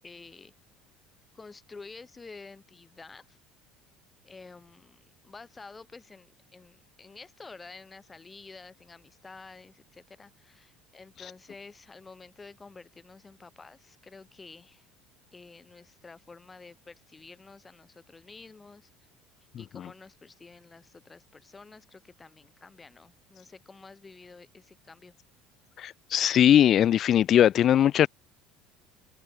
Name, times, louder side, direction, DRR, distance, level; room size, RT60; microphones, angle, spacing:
voice 1, 0.0-0.5 1.3-3.4 4.2-14.9 15.3-18.9 19.6-25.1, left 4 dB, 15° left, 7.6 m, -49 dB
voice 2, 25.8-28.1, left 10 dB, 40° left, 0.6 m, -20 dB
cardioid pair, 140°, 0 cm